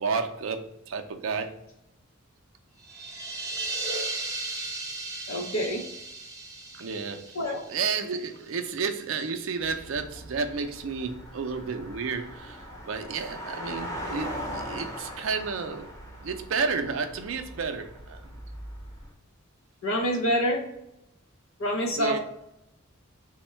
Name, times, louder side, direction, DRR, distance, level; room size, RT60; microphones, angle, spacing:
voice 1, 0.0-1.5 6.7-7.4 7.7-12.6 12.9-15.9 16.2-18.2 22.0-22.2, right 5 dB, 70° right, 6 dB, 0.4 m, -31 dB
sound 1, 2.8-8.4, right 2 dB, 15° right, 0.5 m, -36 dB
voice 2, 5.3-5.8 7.3-7.6 19.8-20.6 21.6-22.2, equal, 80° left, 1 dB, 0.7 m, -26 dB
sound 2, 9.6-19.1, equal, 15° left, 0.9 m, -40 dB
3.4 x 2.1 x 4.2 m, 0.84 s
head